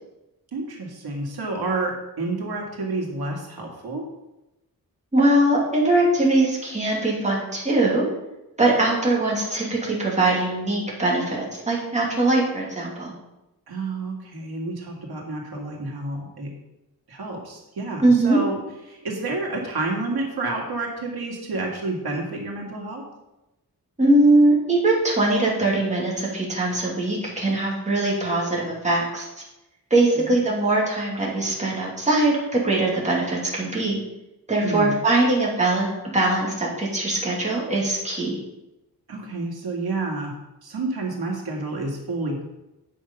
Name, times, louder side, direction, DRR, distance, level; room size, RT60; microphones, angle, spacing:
voice 1, 0.5-4.1 13.7-16.5 17.1-18.6 18.9-23.0 30.1-30.3 34.6-34.9 39.1-40.4 40.6-42.5, right 2 dB, 85° right, -1 dB, 2.1 m, -29 dB
voice 2, 5.1-8.0 8.6-13.1 18.0-18.4 24.0-29.3 29.9-34.0 34.5-35.9 36.1-38.4, right 2 dB, 20° right, -4 dB, 2.4 m, -21 dB
8.5 x 6.5 x 5.4 m, 0.95 s
wide cardioid pair, 170°, 36 cm